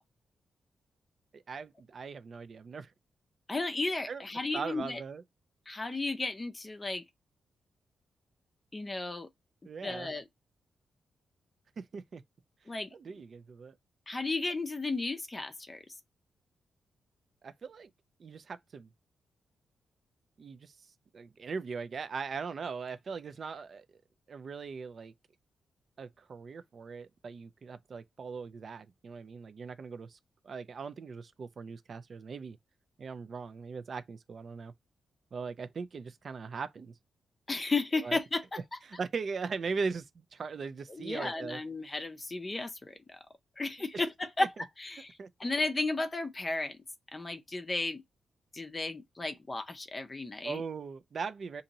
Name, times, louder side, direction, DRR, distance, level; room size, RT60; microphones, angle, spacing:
voice 1, 1.3-2.9 4.1-4.2 4.5-5.2 9.6-10.1 11.8-12.2 12.9-13.7 17.4-17.9 18.2-18.9 20.4-20.7 21.1-23.8 24.3-25.1 26.0-30.2 30.4-32.6 33.0-34.7 35.3-36.9 38.0-38.2 38.8-41.6 43.9-44.0 44.4-44.5 44.9-45.3 50.4-51.6, right 5 dB, 45° right, 0.3 m, -39 dB
voice 2, 3.5-5.0 5.7-7.0 8.7-9.3 9.8-10.2 12.7-12.9 14.1-15.8 37.5-38.6 40.9-43.2 43.6-44.5 44.8-46.8 47.1-48.0 48.5-50.6, left 3 dB, 20° left, 0.5 m, -34 dB
2.8 x 2.6 x 3.9 m
wide cardioid pair, 150°, 0 cm